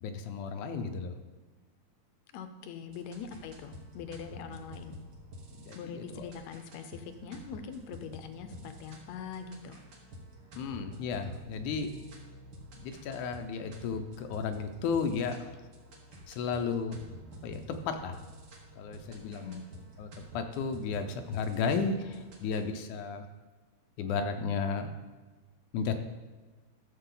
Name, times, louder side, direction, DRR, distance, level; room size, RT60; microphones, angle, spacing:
voice 1, 0.0-1.1 5.6-6.3 10.6-11.9 12.8-15.4 16.3-17.0 17.4-17.6 17.9-18.2 18.8-19.6 20.0-20.1 20.3-23.2 24.0-24.9 25.7-26.0, left 5 dB, 90° left, 6 dB, 2.3 m, -33 dB
voice 2, 2.3-4.9 5.8-9.8 19.2-19.7, left 6 dB, 75° left, 8 dB, 1.9 m, -43 dB
sound 1, 2.9-22.6, equal, 40° right, 1.8 m, -49 dB
12.5 x 7.2 x 3.9 m, 1.3 s
omnidirectional pair, 3.4 m